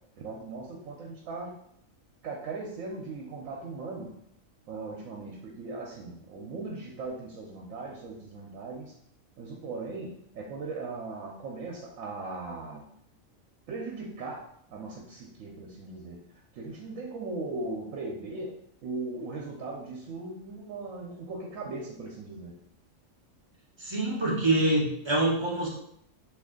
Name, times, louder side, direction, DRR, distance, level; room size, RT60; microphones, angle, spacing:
voice 1, 0.2-1.6 2.2-4.1 4.7-8.9 9.4-12.9 13.7-14.4 14.7-16.2 16.5-18.5 18.8-22.5, right 3 dB, 80° right, -3 dB, 1.0 m, -38 dB
voice 2, 23.8-25.7, right 2 dB, 35° right, -4 dB, 0.5 m, -25 dB
2.7 x 2.5 x 3.6 m, 0.69 s
omnidirectional pair, 1.4 m